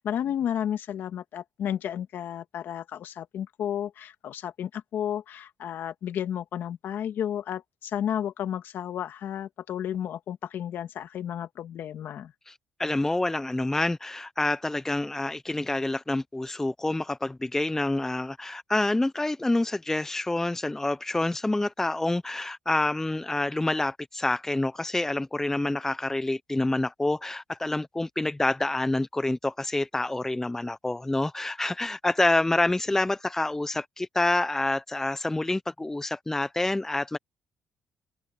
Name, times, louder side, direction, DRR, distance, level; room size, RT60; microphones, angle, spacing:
voice 1, 0.0-12.3, left 9 dB, 65° left, 1.9 m, -32 dB
voice 2, 12.8-37.2, left 2 dB, 10° left, 0.7 m, -27 dB
open air
cardioid pair, 95°, 4 cm